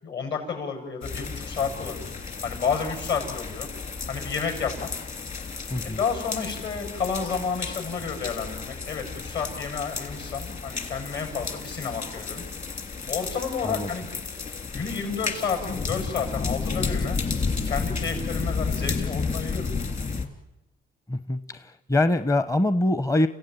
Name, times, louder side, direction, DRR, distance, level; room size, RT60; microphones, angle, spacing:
voice 1, 0.0-2.1 2.4-3.7 4.1-4.9 5.8-12.4 13.1-14.1 14.7-17.2 17.6-19.7, left 5 dB, 60° left, 4 dB, 7.6 m, -30 dB
sound 1, 1.0-20.2, left 4 dB, 40° left, 3.2 m, -32 dB
voice 2, 21.1-23.3, left 1 dB, 15° left, 12 dB, 0.8 m, -24 dB
29.5 x 16.0 x 9.3 m, 1.0 s
cardioid pair, 90°, 20 cm